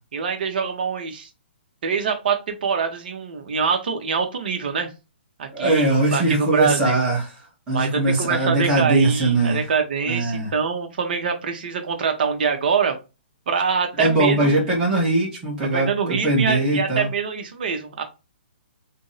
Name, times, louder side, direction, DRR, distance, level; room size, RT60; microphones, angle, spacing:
voice 1, 0.1-1.3 1.8-4.9 5.4-7.0 7.7-13.0 13.5-14.5 15.7-18.0, right 6 dB, 50° right, 5 dB, 0.7 m, -24 dB
voice 2, 5.5-7.4 7.7-9.6 10.1-10.5 14.0-17.1, right 2 dB, 10° right, -6 dB, 0.7 m, -21 dB
2.5 x 2.0 x 3.8 m, 0.29 s
hypercardioid pair, 165°, 6 cm